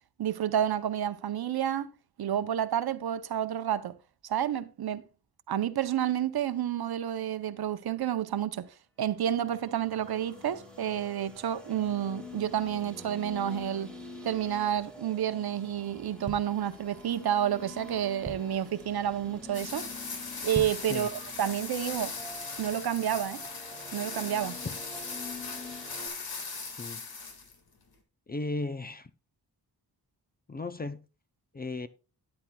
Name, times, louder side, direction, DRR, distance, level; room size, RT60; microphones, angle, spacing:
voice 1, 0.2-1.9 2.2-3.9 4.2-5.0 5.5-8.7 9.0-13.9 14.2-19.9 20.4-22.1 22.6-23.4 23.9-24.6, right 10 dB, 70° right, 0.7 m, -30 dB
sound 1, 9.2-26.1, left 2 dB, ahead, 1.9 m, -47 dB
sound 2, 16.2-17.2 17.7-17.8 18.0-18.7 19.2-19.5 19.7-19.8 20.4-21.0 21.4-21.5, right 3 dB, 20° right, 0.7 m, -40 dB
sound 3, 19.5-27.5, left 4 dB, 65° left, 1.9 m, -39 dB
voice 2, 26.6-27.0 28.3-29.1 30.5-31.0 31.5-31.9, left 2 dB, 25° left, 0.4 m, -35 dB
13.0 x 9.7 x 2.3 m
wide cardioid pair, 160°, 39 cm